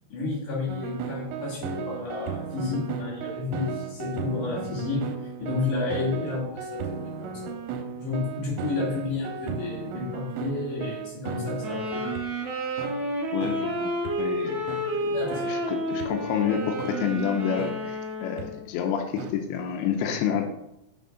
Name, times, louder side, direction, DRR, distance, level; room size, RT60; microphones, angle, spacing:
voice 1, 0.1-5.1 5.4-7.5 8.0-12.1 15.1-15.6, left 3 dB, 50° left, -5 dB, 3.5 m, -31 dB
sound 1, 0.7-12.2 12.8-12.9 13.4-13.6 14.1-14.2 14.7-14.8 15.3-15.5 16.0-16.1 16.8-16.9 17.6-17.7 18.4-18.5 19.2-19.3, right 5 dB, 90° right, 3.0 m, -35 dB
sound 2, 11.6-18.6, equal, 60° right, 2.0 m, -30 dB
voice 2, 13.3-13.9 14.2-14.7 15.1-15.2 15.4-20.5, left 8 dB, 90° left, 4 dB, 2.2 m, -28 dB
9.0 x 4.4 x 3.8 m, 0.84 s
omnidirectional pair, 5.2 m